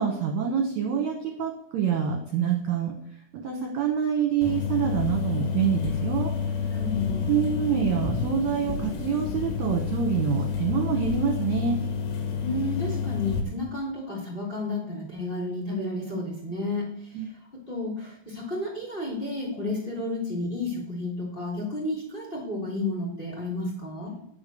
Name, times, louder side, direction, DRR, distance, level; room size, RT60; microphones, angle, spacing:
voice 1, 0.0-6.3 7.3-11.8 17.1-17.3, right 7 dB, 65° right, 1 dB, 2.0 m, -26 dB
sound 1, 4.4-13.4, left 6 dB, 85° left, 3.8 m, -29 dB
voice 2, 6.7-7.3 12.4-24.1, left 2 dB, 15° left, -2 dB, 3.1 m, -32 dB
10.5 x 5.8 x 6.8 m, 0.70 s
omnidirectional pair, 4.6 m